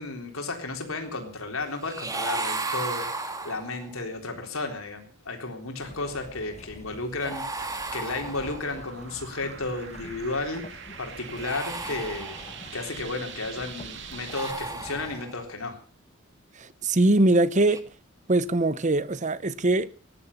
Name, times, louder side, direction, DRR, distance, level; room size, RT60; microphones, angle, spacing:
voice 1, 0.0-3.1 3.4-12.4 12.7-15.8, left 3 dB, 90° left, 3.8 m, -33 dB
sound 1, 1.8-4.0 7.2-8.8 11.2-12.8 14.1-15.5 17.5-17.8, right 3 dB, 15° right, 1.8 m, -34 dB
sound 2, 5.8-15.2, left 1 dB, 35° left, 1.6 m, -47 dB
sound 3, 7.6-14.5, right 7 dB, 60° right, 2.3 m, -43 dB
voice 2, 16.6-17.8 18.3-19.9, right 2 dB, 35° right, 0.9 m, -22 dB
18.0 x 11.5 x 6.9 m
head